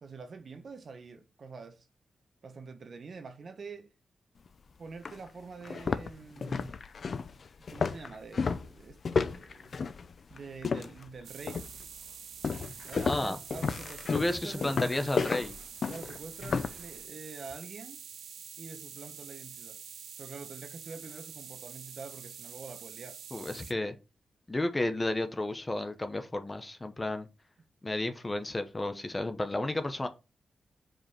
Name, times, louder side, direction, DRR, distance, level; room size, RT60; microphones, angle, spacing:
voice 1, 0.0-1.8 2.4-3.9 4.8-6.8 7.7-9.7 10.3-11.7 12.8-15.0 15.9-18.0 18.6-19.8 20.2-23.2, right 4 dB, 55° right, 1.1 m, -46 dB
sound 1, 4.5-4.6 5.0-5.2 5.6-11.1 11.5-11.9 12.4-16.8, left 5 dB, 50° left, 0.6 m, -32 dB
sound 2, 11.2-23.7, right 8 dB, 90° right, 0.5 m, -47 dB
voice 2, 13.1-13.4 14.1-15.6 23.3-23.9 24.5-27.3 27.8-30.1, left 2 dB, 20° left, 0.9 m, -32 dB
5.2 x 4.7 x 5.5 m
wide cardioid pair, 120°, 0 cm